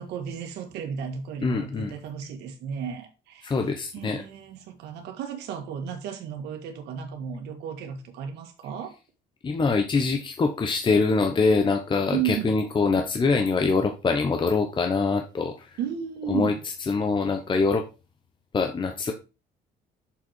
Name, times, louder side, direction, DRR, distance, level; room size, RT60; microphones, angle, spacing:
voice 1, 0.0-8.9 12.1-12.5 15.8-16.6, right 8 dB, 85° right, 1.8 m, -34 dB
voice 2, 1.4-1.9 3.4-4.2 9.4-15.7 16.3-16.5 16.9-17.9 18.5-19.1, left 4 dB, 30° left, 1.0 m, -24 dB
6.8 x 5.1 x 4.6 m
cardioid pair, 110°, 17 cm